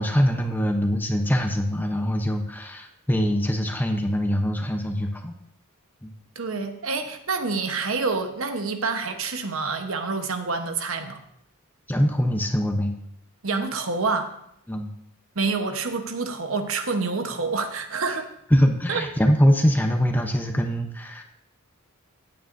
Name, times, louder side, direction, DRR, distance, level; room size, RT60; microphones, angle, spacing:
voice 1, 0.0-5.3 6.0-6.1 11.9-12.9 14.7-14.9 18.5-21.2, equal, 10° left, 4 dB, 0.7 m, -23 dB
voice 2, 6.3-11.2 13.4-14.3 15.3-18.3 18.9-19.0, right 4 dB, 65° right, 7 dB, 1.0 m, -27 dB
16.0 x 8.7 x 2.6 m, 0.75 s
head